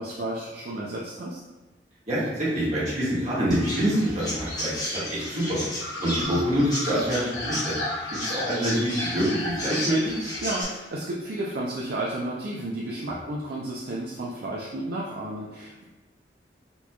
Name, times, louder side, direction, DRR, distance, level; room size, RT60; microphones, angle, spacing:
voice 1, 0.0-1.4 10.4-15.8, right 1 dB, 60° right, -4 dB, 0.4 m, -32 dB
voice 2, 2.1-5.6 6.0-7.7 8.2-10.1, equal, 40° right, -8 dB, 1.4 m, -26 dB
sound 1, 3.2-10.9, left 1 dB, 80° left, 0.8 m, -36 dB
Chirp tweet, 3.5-10.6, equal, 20° left, 1.0 m, -34 dB
4.2 x 2.9 x 2.3 m, 1.1 s
head